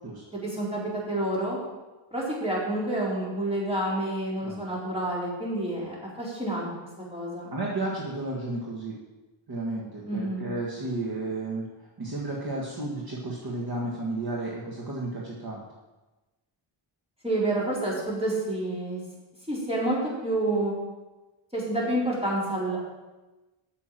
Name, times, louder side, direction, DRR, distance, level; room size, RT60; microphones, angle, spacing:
voice 1, 0.3-0.8 1.1-1.6 2.1-6.7 7.1-7.5 10.0-10.5 17.2-19.0 19.5-20.7 21.5-22.8, right 1 dB, 10° right, -6 dB, 4.2 m, -28 dB
voice 2, 7.5-8.9 9.5-11.7 12.0-15.6, right 2 dB, 50° right, -3 dB, 1.8 m, -32 dB
9.0 x 7.1 x 7.6 m, 1.1 s
wide cardioid pair, 120°, 49 cm